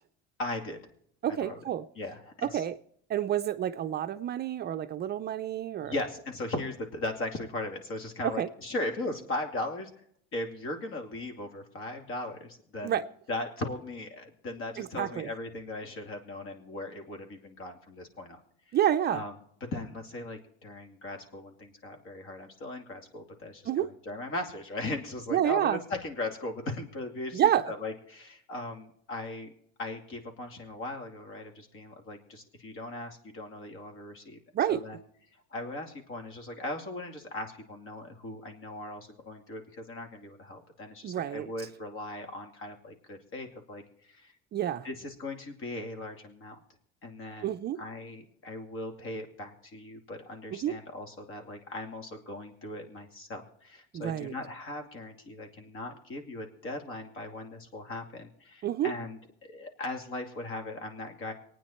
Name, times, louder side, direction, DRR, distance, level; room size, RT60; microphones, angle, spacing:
voice 1, 0.4-0.8 1.4-1.6 2.0-2.6 5.8-9.9 10.3-13.0 13.3-18.4 18.7-18.8 19.1-19.3 19.7-29.5 29.8-34.4 34.7-35.0 35.5-43.8 44.1-44.3 44.8-46.6 47.0-61.3, left 2 dB, 45° left, 2.6 m, -38 dB
voice 2, 1.2-1.8 2.4-2.7 3.1-5.9 8.2-8.5 12.8-13.0 14.8-15.3 18.7-19.2 23.7-23.9 25.3-25.8 27.3-27.8 34.5-34.8 41.0-41.5 44.5-44.9 47.4-47.8 50.5-50.7 53.9-54.3 58.6-58.9, right 11 dB, 35° right, 0.5 m, -29 dB
24.5 x 9.2 x 4.4 m
cardioid pair, 140°, 29 cm